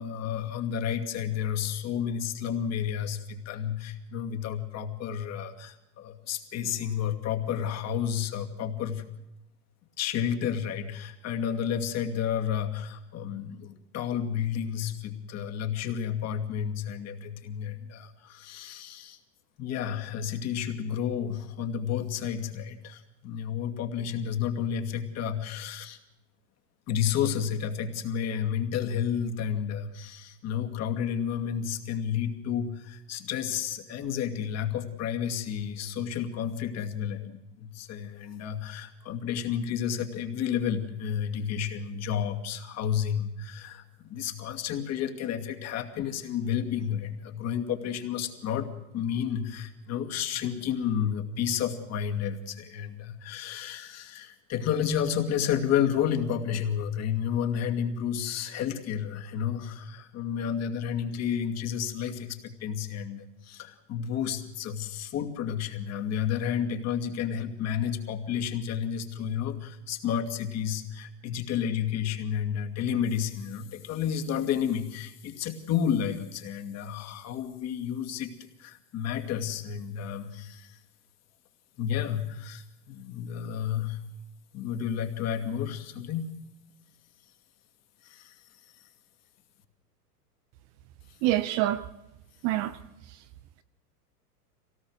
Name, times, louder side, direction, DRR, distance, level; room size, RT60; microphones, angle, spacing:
voice 1, 0.0-9.0 10.0-19.2 19.6-26.0 26.9-80.8 81.8-84.0 84.5-86.4 88.0-88.9 91.1-91.2, left 8 dB, 35° left, 2.5 m, -31 dB
voice 2, 91.2-91.9 92.4-93.2, right 14 dB, 35° right, 0.8 m, -27 dB
26.0 x 17.5 x 6.5 m
figure-of-eight pair, 95°, 47 cm